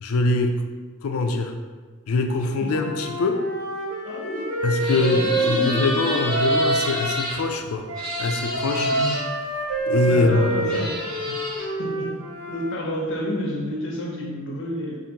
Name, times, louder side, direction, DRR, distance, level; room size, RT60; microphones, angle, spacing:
voice 1, 0.0-0.6 1.0-1.5 2.1-3.4 4.6-7.9 8.2-8.9 9.9-10.8, left 2 dB, 80° left, 5 dB, 0.4 m, -23 dB
Wind instrument woodwind instrument, 2.7-7.3 7.9-12.7, right 1 dB, 85° right, 1.1 m, -27 dB
voice 2, 4.0-4.5 4.9-5.8 8.8-9.2 10.1-11.0 11.3-11.5 11.8-12.2 12.5-15.0, left 1 dB, 60° left, -2 dB, 0.8 m, -30 dB
sound 1, 4.8-7.4 7.9-9.2 10.2-10.3 10.6-11.7, equal, 5° left, 1.2 m, -31 dB
4.9 x 2.5 x 2.8 m, 1.4 s
head